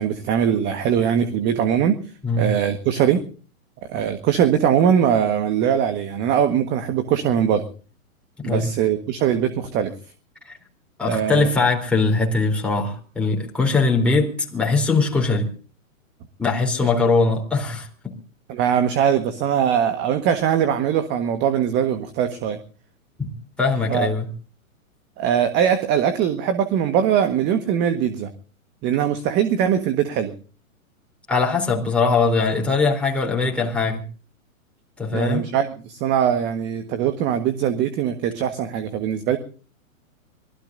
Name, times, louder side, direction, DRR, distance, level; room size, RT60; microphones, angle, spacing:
voice 1, 0.0-2.0 2.4-3.2 3.9-7.6 8.4-9.9 11.0-11.5 16.8-16.9 18.5-22.6 23.9-24.1 25.2-28.3 28.8-30.3 35.1-39.4, right 9 dB, 25° right, 10 dB, 1.5 m, -21 dB
voice 2, 8.4-8.7 10.4-10.5 11.0-15.5 16.4-18.1 23.2-23.3 23.6-24.3 31.3-34.0 35.0-35.5, left 3 dB, 5° left, 0 dB, 3.8 m, -21 dB
25.5 x 19.0 x 2.6 m, 0.39 s
hypercardioid pair, 140°, 41 cm